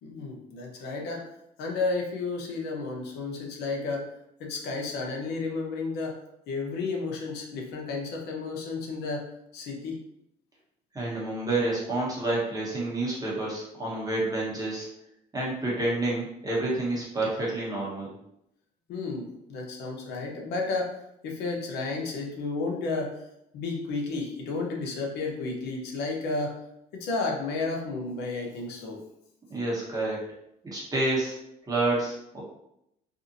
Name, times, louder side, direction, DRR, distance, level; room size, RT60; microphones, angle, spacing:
voice 1, 0.0-1.2 1.6-4.1 4.4-6.2 6.5-9.2 9.5-10.0 18.9-21.0 21.2-23.2 23.5-26.6 26.9-29.0, left 3 dB, 80° left, 0 dB, 0.7 m, -32 dB
voice 2, 10.9-14.9 15.3-18.1 29.5-30.2 30.6-31.4 31.7-32.4, right 2 dB, 20° right, -5 dB, 1.0 m, -29 dB
2.6 x 2.5 x 2.6 m, 0.80 s
cardioid pair, 110°, 17 cm